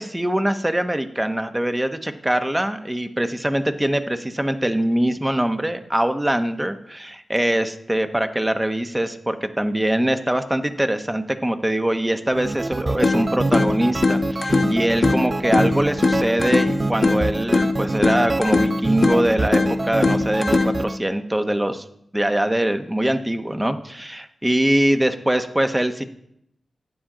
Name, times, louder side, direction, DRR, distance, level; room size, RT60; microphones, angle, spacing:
voice 1, 0.0-21.8 22.1-26.0, right 1 dB, 15° right, 8 dB, 1.1 m, -23 dB
sound 1, 12.3-21.0, right 3 dB, 40° right, 0.4 m, -27 dB
sound 2, 13.0-21.0, left 3 dB, 55° left, 1.3 m, -22 dB
12.0 x 8.8 x 3.9 m, 0.75 s
cardioid pair, 45°, 0 cm